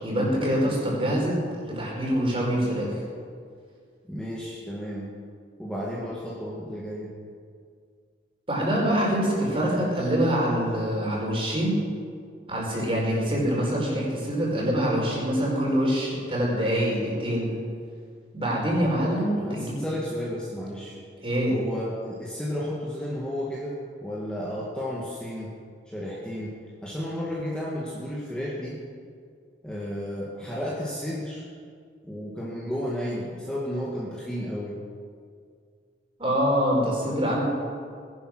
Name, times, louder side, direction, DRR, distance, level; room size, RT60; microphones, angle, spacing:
voice 1, 0.0-3.0 8.5-11.8 12.5-17.5 18.3-19.8 21.2-21.5 36.2-37.4, equal, 30° right, -3 dB, 4.7 m, -25 dB
voice 2, 4.0-5.1 5.6-7.1 19.0-21.0 21.5-25.5 25.9-28.8 29.6-31.5 32.0-34.7, equal, 5° left, -6 dB, 2.0 m, -33 dB
19.5 x 11.0 x 6.2 m, 2.1 s
head